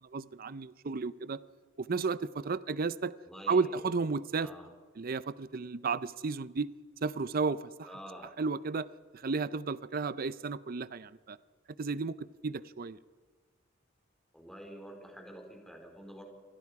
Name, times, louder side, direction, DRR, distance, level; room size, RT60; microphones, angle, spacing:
voice 1, 0.0-1.4 1.8-3.1 3.5-4.5 5.0-6.7 7.0-7.9 8.4-8.9 9.1-11.4 11.8-13.0, right 4 dB, 45° right, 16 dB, 0.5 m, -33 dB
voice 2, 3.3-4.0 4.3-4.7 7.8-8.3 14.3-16.2, equal, ahead, 2 dB, 4.0 m, -48 dB
27.0 x 20.5 x 4.8 m, 1.5 s
head